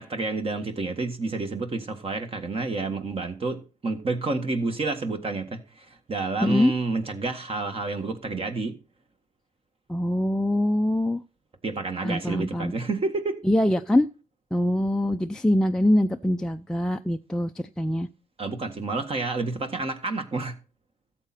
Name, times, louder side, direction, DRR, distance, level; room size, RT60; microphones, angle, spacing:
voice 1, 0.0-8.8 11.6-13.4 18.4-20.6, right 3 dB, 35° right, 1.7 m, -29 dB
voice 2, 6.4-6.7 9.9-11.2 12.0-12.7 13.4-14.1 14.5-18.1, left 1 dB, 5° left, 0.5 m, -23 dB
13.5 x 7.6 x 4.3 m
hypercardioid pair, 60°, 16 cm